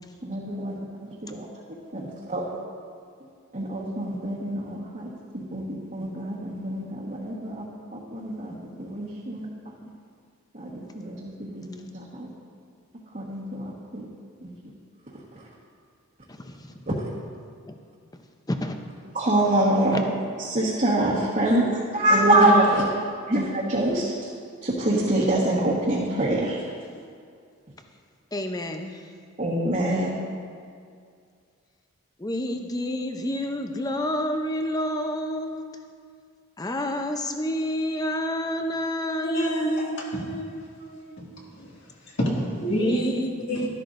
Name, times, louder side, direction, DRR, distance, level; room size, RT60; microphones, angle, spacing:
voice 1, 0.2-2.5 3.5-7.7 7.9-9.5 10.5-12.3 13.1-14.1 14.4-14.5 15.3-15.5 19.1-20.0 20.4-22.8 23.3-24.3 24.6-26.7 29.4-30.1, right 1 dB, 35° right, -7 dB, 1.3 m, -25 dB
voice 2, 16.3-16.9 17.7-17.8 18.5-18.8 19.9-20.0 28.3-29.1 32.2-35.8 36.6-40.6 42.7-43.7, equal, 15° left, 5 dB, 0.6 m, -29 dB
voice 3, 39.2-41.3 41.6-41.7 42.2-43.1 43.5-43.7, equal, 55° left, -4 dB, 2.0 m, -29 dB
12.5 x 12.0 x 2.6 m, 2.2 s
head